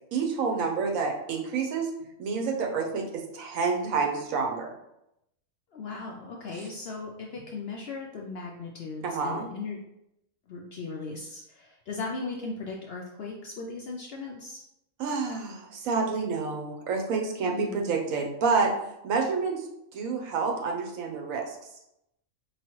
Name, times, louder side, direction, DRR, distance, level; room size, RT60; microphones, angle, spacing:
voice 1, 0.1-1.9 2.2-4.7 9.0-9.5 15.0-18.7 19.0-19.7 19.9-21.6, right 4 dB, 70° right, 2 dB, 1.1 m, -28 dB
voice 2, 5.7-9.8 10.5-14.6 17.5-17.9, left 4 dB, 65° left, 0 dB, 0.6 m, -37 dB
4.7 x 3.0 x 3.0 m, 0.82 s
omnidirectional pair, 1.5 m